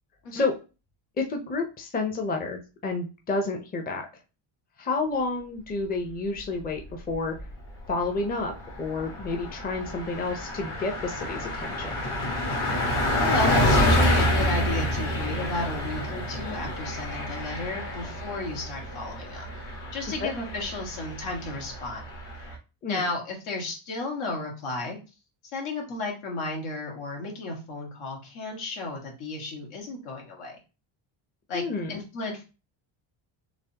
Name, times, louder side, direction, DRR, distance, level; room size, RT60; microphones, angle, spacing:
voice 1, 1.2-4.0 4.8-7.3 7.9-8.5 8.8-11.9 20.2-20.3 22.8-23.0 31.5-32.0, left 3 dB, 20° left, 3 dB, 0.6 m, -30 dB
Car passing by, 6.9-7.5 7.9-8.0 8.3-22.5, left 1 dB, 50° left, 1.3 m, -28 dB
voice 2, 13.2-19.4 19.9-22.0 22.9-25.0 25.5-30.6 31.5-31.6 31.9-32.4, left 2 dB, 80° left, 0 dB, 1.8 m, -33 dB
4.0 x 3.2 x 2.8 m, 0.30 s
cardioid pair, 135°, 49 cm